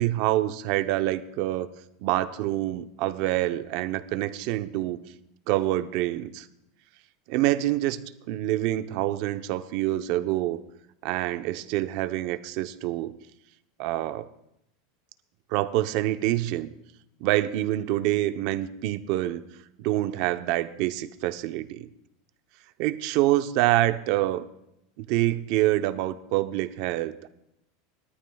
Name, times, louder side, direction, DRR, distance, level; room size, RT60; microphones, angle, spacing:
voice 1, 0.0-1.7 2.0-5.0 5.5-6.5 7.3-8.0 8.3-10.6 11.0-13.1 13.8-14.2 15.5-16.7 17.2-19.4 19.8-21.9 22.8-24.4 25.0-27.3, right 15 dB, 55° right, 10 dB, 0.7 m, -26 dB
21.5 x 13.0 x 2.3 m, 0.82 s
supercardioid pair, 155°, 0 cm